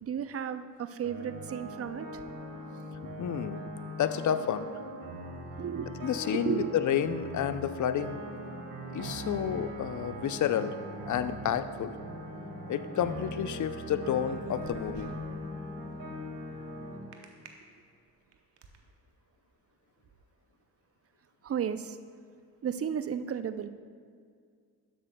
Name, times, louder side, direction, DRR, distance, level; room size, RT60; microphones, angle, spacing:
voice 1, 0.0-2.2 5.6-5.9 6.3-6.8 21.4-22.0 22.6-23.7, right 8 dB, 35° right, 12 dB, 0.5 m, -33 dB
sound 1, 1.0-17.0, equal, 50° right, 1.9 m, -40 dB
voice 2, 3.0-3.6 4.0-4.7 6.0-8.2 8.9-10.8 11.1-11.9 12.7-15.1, left 9 dB, 45° left, 12 dB, 0.5 m, -30 dB
sound 2, 14.2-15.4 17.1-17.5 18.1-18.8, right 5 dB, 75° right, 0.9 m, -47 dB
12.0 x 7.7 x 2.2 m, 2.1 s
supercardioid pair, 50°, 42 cm